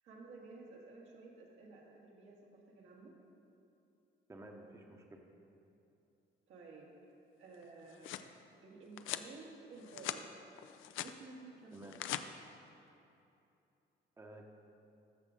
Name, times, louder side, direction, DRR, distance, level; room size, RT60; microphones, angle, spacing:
voice 1, 0.0-3.2 6.5-6.9 7.4-8.2 8.6-10.3 11.0-11.9, right 3 dB, 80° right, -3 dB, 1.7 m, -53 dB
voice 2, 4.3-5.2 11.7-12.0 14.2-14.5, right 1 dB, 15° right, 2 dB, 0.8 m, -52 dB
sound 1, 7.6-8.3 9.0-9.3 9.8-10.2 10.6-11.1 11.7-12.2, left 12 dB, 85° left, 0.4 m, -42 dB
13.5 x 6.1 x 3.8 m, 2.8 s
cardioid pair, 90°, 20 cm